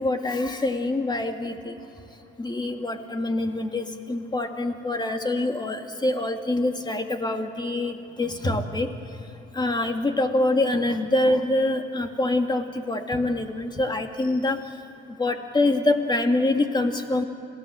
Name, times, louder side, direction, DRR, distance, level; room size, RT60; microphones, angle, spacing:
voice 1, 0.0-1.8 2.4-8.9 9.5-14.6 15.2-17.2, left 2 dB, 20° left, 5 dB, 2.3 m, -25 dB
27.0 x 17.5 x 7.7 m, 2.8 s
cardioid pair, 90°, 20 cm